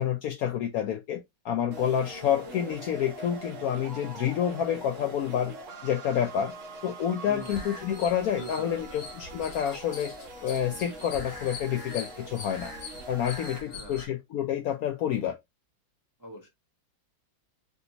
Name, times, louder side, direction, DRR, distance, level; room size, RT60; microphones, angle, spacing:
voice 1, 0.0-5.5 5.8-6.5 6.8-10.1 10.4-12.7 13.1-15.4, left 9 dB, 70° left, 0.8 m, -28 dB
sound 1, 1.7-13.6, right 2 dB, 60° right, 0.9 m, -43 dB
voice 2, 7.3-7.8 8.4-9.0 13.6-14.0 16.2-16.5, equal, 20° right, 0.6 m, -42 dB
sound 2, 7.4-14.1, left 3 dB, 55° left, 1.2 m, -43 dB
3.3 x 2.7 x 2.7 m
omnidirectional pair, 1.9 m